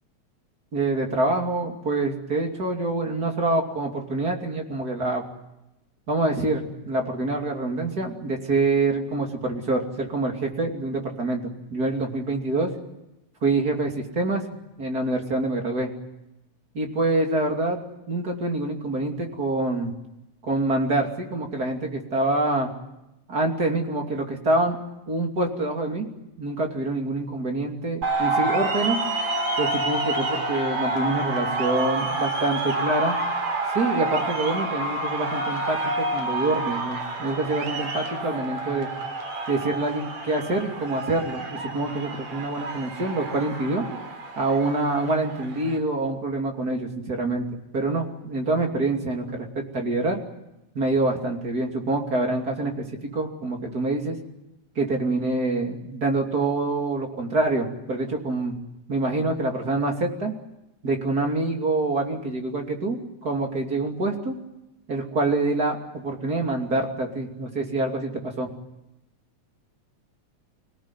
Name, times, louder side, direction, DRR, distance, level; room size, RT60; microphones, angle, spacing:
voice 1, 0.7-5.2 6.1-12.7 13.4-14.4 14.8-15.9 16.7-17.8 18.1-19.9 20.4-22.7 23.3-24.8 25.1-26.1 26.4-29.0 29.6-33.2 33.7-38.9 39.5-43.9 44.4-50.2 50.7-54.2 54.7-58.6 58.9-60.3 60.8-64.4 64.9-68.5, right 2 dB, 30° right, 2 dB, 3.1 m, -26 dB
sound 1, 28.0-45.8, right 2 dB, 65° right, 4.5 m, -28 dB
25.5 x 17.5 x 9.9 m, 0.92 s
omnidirectional pair, 3.4 m